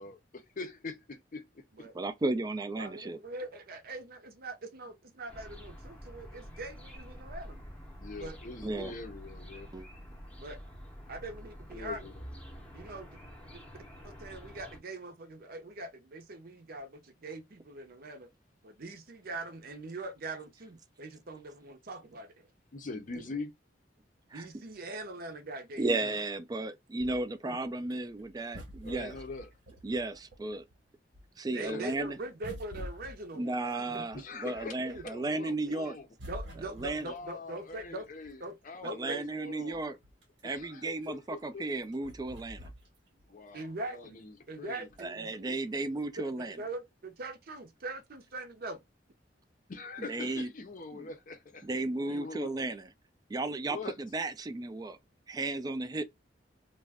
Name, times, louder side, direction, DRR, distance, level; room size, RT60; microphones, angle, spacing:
voice 1, 0.0-1.6 8.0-9.7 11.7-12.2 22.7-23.5 25.9-26.2 28.8-29.5 31.6-31.9 34.1-36.1 36.9-39.8 40.4-41.6 43.3-44.9 49.7-51.7 52.1-52.7 53.6-54.0 55.9-56.0, left 3 dB, 45° left, 0.5 m, -43 dB
voice 2, 1.9-3.2 8.6-8.9 9.7-9.9 24.3-24.5 25.8-29.1 29.8-30.7 31.4-32.2 33.3-36.0 36.7-37.1 38.8-40.0 40.4-42.7 45.0-46.6 50.0-50.5 50.9-51.1 51.6-52.9 53.3-55.0 55.3-56.0, right 2 dB, 20° right, 0.3 m, -34 dB
voice 3, 2.8-7.6 8.2-8.4 10.4-10.6 11.1-12.1 12.7-13.2 13.5-13.6 14.0-18.3 18.6-22.5 24.3-26.0 27.4-27.6 31.5-34.1 34.9-35.0 36.3-38.1 38.4-38.6 38.8-39.2 43.5-44.2 44.5-45.5 46.2-48.8, right 2 dB, 55° right, 0.6 m, -42 dB
sound 1, 5.3-14.8, equal, 5° left, 0.7 m, -48 dB
sound 2, 27.0-30.7 31.1-35.2 35.6-38.6 39.1-39.2 39.5-43.3 43.6-43.7 44.9-45.3 46.0-46.1, equal, 80° right, 1.1 m, -48 dB
2.4 x 2.1 x 3.4 m
head